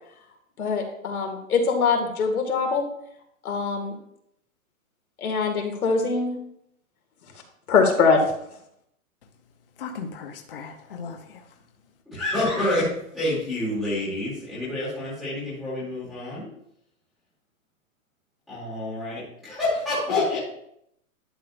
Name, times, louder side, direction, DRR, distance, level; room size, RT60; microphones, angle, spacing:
voice 1, 0.6-2.8 3.4-4.0 5.2-6.4 7.7-8.2, left 5 dB, 90° left, 3 dB, 2.1 m, -23 dB
voice 2, 9.8-11.4 20.1-20.4, left 5 dB, 40° left, 4 dB, 0.8 m, -33 dB
voice 3, 12.1-12.9 13.1-16.5 18.5-20.4, left 1 dB, ahead, -17 dB, 0.6 m, -28 dB
11.0 x 6.4 x 2.5 m, 0.75 s
hypercardioid pair, 180°, 42 cm